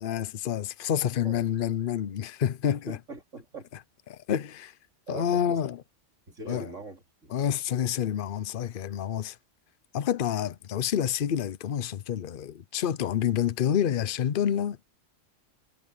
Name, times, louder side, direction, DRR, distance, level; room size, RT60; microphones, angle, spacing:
voice 1, 0.0-3.0 4.1-4.7 5.1-5.8 6.5-6.7 7.3-9.4 9.9-14.8, left 9 dB, 50° left, 0.8 m, -28 dB
voice 2, 2.6-3.7 5.1-5.6 6.3-7.3, right 3 dB, 85° right, 3.7 m, -42 dB
omnidirectional pair, 1.3 m